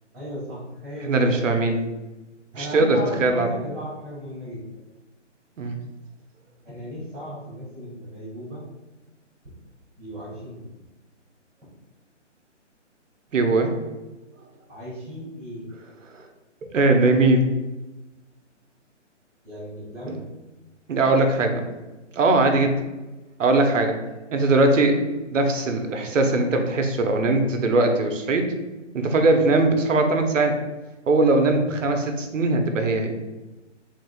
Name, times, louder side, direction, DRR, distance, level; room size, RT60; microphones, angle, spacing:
voice 1, 0.1-1.4 2.5-4.8 6.6-8.6 10.0-10.7 14.7-15.6 19.4-20.2, equal, ahead, -28 dB, 0.7 m, -35 dB
voice 2, 1.0-1.8 2.5-3.5 5.6-5.7 13.3-13.7 16.1-16.2 16.7-17.5 20.1-20.2 20.9-21.7 22.1-22.7 23.4-24.0 24.3-25.0 25.3-28.5 28.9-30.6 31.1-33.1, right 2 dB, 85° right, 5 dB, 0.8 m, -20 dB
3.6 x 3.5 x 2.3 m, 1.1 s
hypercardioid pair, 175°, 37 cm